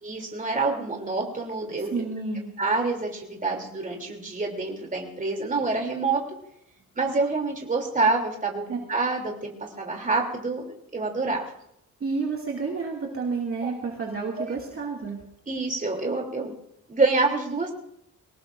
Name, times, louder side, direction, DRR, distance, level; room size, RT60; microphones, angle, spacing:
voice 1, 0.0-2.0 2.6-6.2 7.0-8.6 8.9-11.4 13.6-13.7 14.4-14.5 15.5-16.5 16.9-17.7, right 3 dB, 25° right, 1 dB, 3.1 m, -27 dB
voice 2, 1.9-2.5 8.7-8.8 12.0-15.2, right 4 dB, 40° right, -2 dB, 2.4 m, -30 dB
23.0 x 18.5 x 2.6 m, 0.75 s
wide cardioid pair, 140°, 34 cm